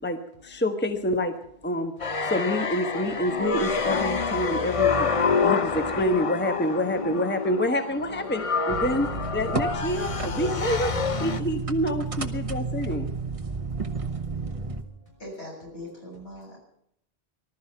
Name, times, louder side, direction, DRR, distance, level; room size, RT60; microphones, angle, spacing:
voice 1, 0.0-1.3 1.6-1.9 2.2-5.1 5.4-9.1 9.3-10.9 11.2-13.1, left 1 dB, 10° left, 7 dB, 1.1 m, -27 dB
sound 1, 2.0-11.4, left 5 dB, 35° left, 0.8 m, -27 dB
sound 2, 8.7-14.8, right 4 dB, 35° right, 1.2 m, -32 dB
voice 2, 13.4-15.2, right 1 dB, 60° left, -1 dB, 6.3 m, -57 dB
voice 3, 15.2-16.6, left 1 dB, 80° left, -2 dB, 7.8 m, -40 dB
19.5 x 12.5 x 5.7 m, 0.72 s
omnidirectional pair, 1.1 m